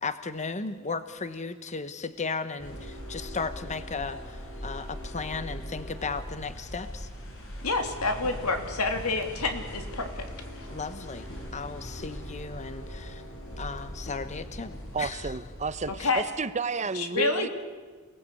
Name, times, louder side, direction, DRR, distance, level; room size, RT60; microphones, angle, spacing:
voice 1, 0.0-4.2 4.6-7.1 10.7-11.3 11.5-13.2 13.6-15.2 16.0-16.1, left 4 dB, 35° left, 1.0 m, -35 dB
sound 1, 2.6-15.9, equal, 65° left, 7.6 m, -40 dB
voice 2, 7.6-10.2 16.0-16.2 16.9-17.5, left 3 dB, 90° left, 3.2 m, -28 dB
voice 3, 14.9-17.5, right 4 dB, 35° right, 0.9 m, -31 dB
29.0 x 19.5 x 8.5 m
head